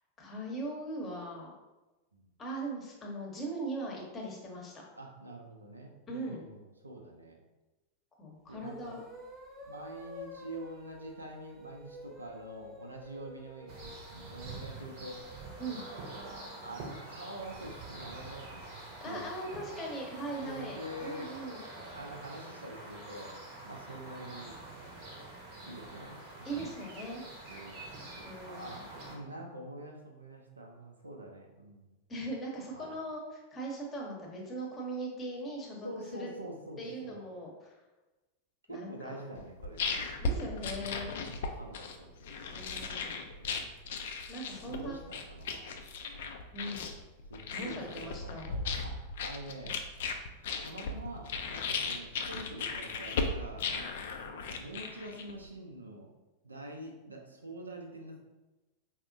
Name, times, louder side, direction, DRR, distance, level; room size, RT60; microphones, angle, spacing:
voice 1, 0.2-1.5 2.4-4.8 6.1-6.4 8.2-9.0 15.6-15.8 19.0-21.6 26.4-27.5 28.2-28.8 32.1-36.3 36.8-37.8 38.7-39.2 40.2-41.2 42.5-43.1 44.3-45.0 46.5-46.8 47.5-48.5, right 1 dB, 25° left, -1 dB, 0.8 m, -40 dB
voice 2, 5.0-7.4 8.5-9.0 9.7-15.2 16.6-18.7 19.0-19.2 20.4-21.3 21.9-23.3 23.6-24.6 25.6-26.8 27.5-27.8 28.4-31.9 32.7-33.0 35.8-37.2 38.7-40.0 41.2-42.2 43.3-43.8 44.4-45.9 47.3-49.8 50.6-53.7 54.3-56.1 56.4-58.2, right 1 dB, 80° right, 1 dB, 0.5 m, -46 dB
sound 1, 8.6-16.7, left 1 dB, 10° right, 0.7 m, -50 dB
sound 2, 13.7-29.2, right 2 dB, 45° right, 0.8 m, -46 dB
sound 3, 39.4-55.5, left 4 dB, 55° left, 0.3 m, -37 dB
4.2 x 2.1 x 2.5 m, 1.1 s
figure-of-eight pair, 90°, 0 cm